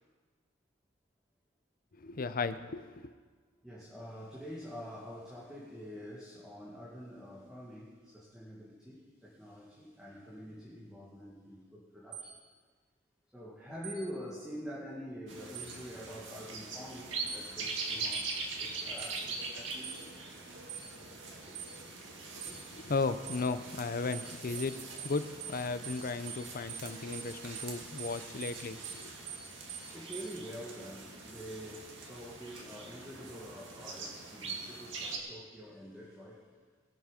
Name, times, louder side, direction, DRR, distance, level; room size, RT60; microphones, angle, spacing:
voice 1, 1.9-3.1 22.3-29.2, left 4 dB, 50° left, 11 dB, 0.6 m, -36 dB
voice 2, 3.6-12.3 13.3-18.3 18.6-20.1 21.5-21.6 22.3-22.5 29.9-36.4, equal, 5° right, -7 dB, 2.1 m, -46 dB
sound 1, 12.1-12.3 13.8-14.0 15.5-15.7 17.3-17.4 18.1-18.3 19.0-19.1 19.8-20.0 20.7-20.9 21.5-21.7 22.4-22.6 23.3-23.4 24.1-24.3 24.5-24.7 25.0-25.1 25.4-25.6 25.8-26.0 26.3-26.4 26.7-26.9 27.1-27.3 27.5-27.7 28.0-28.1 28.4-28.6 28.8-29.0 29.3-29.4 29.7-29.9 30.1-30.3, right 9 dB, 60° right, 5.2 m, -44 dB
sound 2, 15.3-35.2, right 3 dB, 80° right, 2.1 m, -43 dB
21.5 x 7.4 x 5.1 m, 1.5 s
head